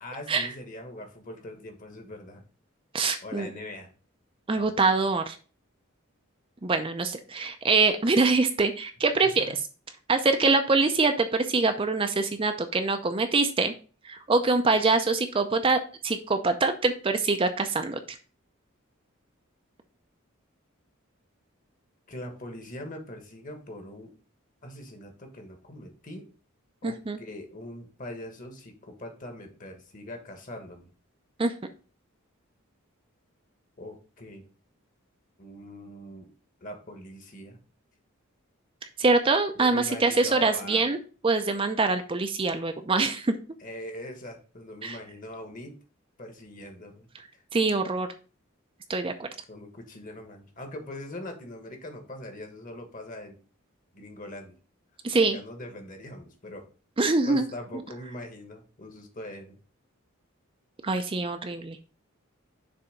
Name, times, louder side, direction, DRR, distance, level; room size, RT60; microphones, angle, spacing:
voice 1, 0.0-2.4 3.2-3.9 4.5-4.7 9.2-9.5 22.1-24.1 24.6-26.3 26.8-30.9 33.8-34.4 35.4-36.3 36.6-37.6 39.5-40.9 43.6-45.7 46.2-47.1 49.5-53.4 53.9-54.5 55.3-56.7 57.2-59.6, left 1 dB, 40° left, 5 dB, 1.4 m, -42 dB
voice 2, 2.9-3.5 4.5-5.4 6.6-9.4 10.1-13.7 14.0-18.2 26.8-27.2 31.4-31.5 39.0-41.0 41.2-43.3 44.8-45.0 47.5-48.1 48.9-49.3 55.0-55.4 57.0-57.5 60.8-61.8, right 3 dB, 25° right, 7 dB, 0.5 m, -24 dB
6.8 x 3.4 x 5.0 m, 0.37 s
head